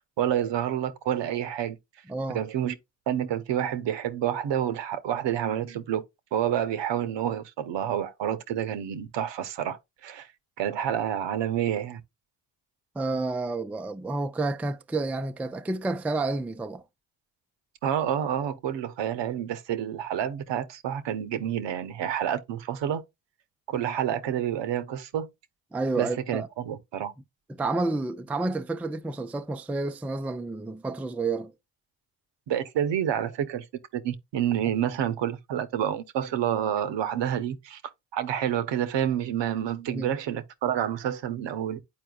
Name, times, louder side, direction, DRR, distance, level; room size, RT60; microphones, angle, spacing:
voice 1, 0.2-1.8 2.3-2.7 3.1-6.0 6.3-10.3 10.6-12.0 17.8-23.0 23.7-25.3 26.0-27.1 32.5-33.7 33.9-37.8 38.1-41.8, right 10 dB, 70° right, 0.8 m, -28 dB
voice 2, 2.1-2.4 13.0-16.8 25.7-26.5 27.5-31.5 39.9-40.1, right 3 dB, 5° right, 0.4 m, -30 dB
9.6 x 4.3 x 2.3 m
supercardioid pair, 50°, 45 cm